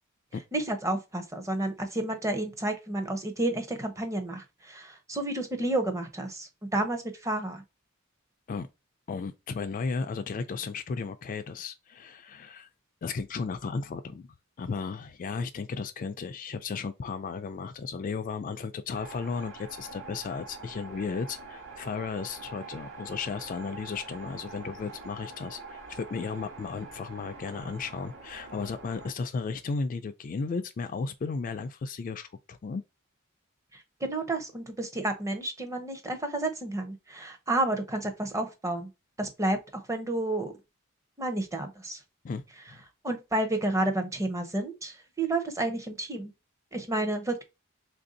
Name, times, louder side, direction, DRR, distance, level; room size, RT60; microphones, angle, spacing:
voice 1, 0.5-7.6 33.7-38.9 39.2-40.5 41.2-42.0 43.0-46.3 46.7-47.4, right 2 dB, 15° right, 0.7 m, -31 dB
voice 2, 9.1-12.7 13.0-14.3 14.6-32.8 42.2-42.4 42.7-42.8, left 4 dB, 40° left, 0.3 m, -34 dB
sound 1, 18.9-29.1, right 3 dB, 65° right, 1.2 m, -45 dB
3.3 x 2.6 x 3.8 m
head